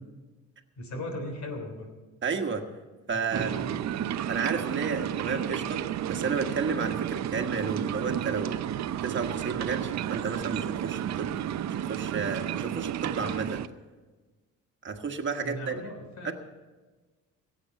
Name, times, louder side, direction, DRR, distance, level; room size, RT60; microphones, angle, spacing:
voice 1, 0.8-1.9 3.1-3.9 15.4-16.3, left 1 dB, 65° left, 4 dB, 3.5 m, -38 dB
voice 2, 2.2-2.6 3.1-3.5 4.3-8.6 9.0-11.3 11.7-13.6 14.8-15.8 16.2-16.3, right 5 dB, 40° right, 4 dB, 1.5 m, -32 dB
sound 1, 3.3-13.7, right 10 dB, 65° right, 0.6 m, -32 dB
16.5 x 8.1 x 7.2 m, 1.3 s
cardioid pair, 90°, 30 cm